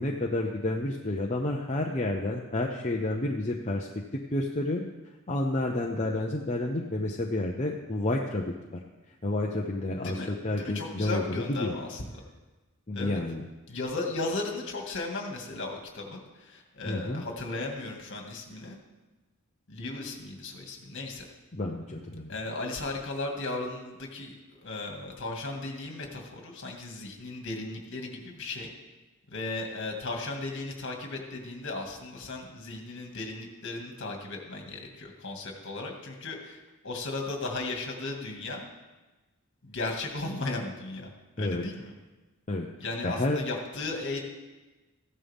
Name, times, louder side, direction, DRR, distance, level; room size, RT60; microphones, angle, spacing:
voice 1, 0.0-4.8 5.3-8.8 9.2-11.8 12.9-13.4 16.8-17.2 21.5-22.4 41.4-41.6 42.5-42.7 43.0-43.4, left 2 dB, 30° left, -1 dB, 0.8 m, -30 dB
voice 2, 10.0-12.1 12.9-13.2 13.7-18.8 19.7-21.3 22.3-28.7 29.3-38.6 39.6-41.1 41.4-41.9 42.8-44.2, left 2 dB, 55° left, 1 dB, 2.2 m, -36 dB
15.0 x 11.0 x 3.6 m, 1.2 s
head